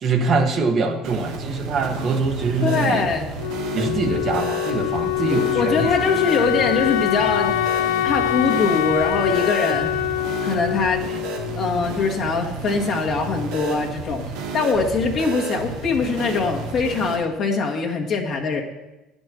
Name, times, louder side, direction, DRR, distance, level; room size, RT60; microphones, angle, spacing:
voice 1, 0.0-3.0 3.7-5.9, right 4 dB, 50° right, 4 dB, 1.2 m, -23 dB
sound 1, 1.0-17.2, right 4 dB, 80° right, 1.4 m, -32 dB
voice 2, 2.6-3.3 5.5-7.5 8.0-10.0 10.4-11.0 11.6-14.2 14.5-18.6, left 4 dB, 55° left, 1 dB, 1.5 m, -22 dB
Wind instrument woodwind instrument, 3.4-12.1, left 14 dB, 75° left, 0.3 m, -24 dB
10.0 x 5.3 x 6.2 m, 1.0 s
hypercardioid pair, 70°, 0 cm